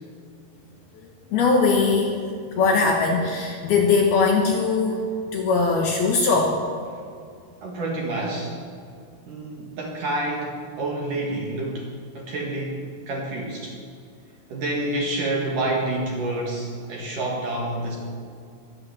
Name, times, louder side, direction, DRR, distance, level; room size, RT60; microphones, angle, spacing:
voice 1, 1.3-2.2 2.6-5.0 5.3-6.6, left 4 dB, 65° left, 1 dB, 2.7 m, -20 dB
voice 2, 7.6-8.6 9.3-11.9 12.1-13.8 14.5-18.0, right 2 dB, 55° right, -1 dB, 2.6 m, -28 dB
22.0 x 8.5 x 7.8 m, 2.3 s
omnidirectional pair, 5.7 m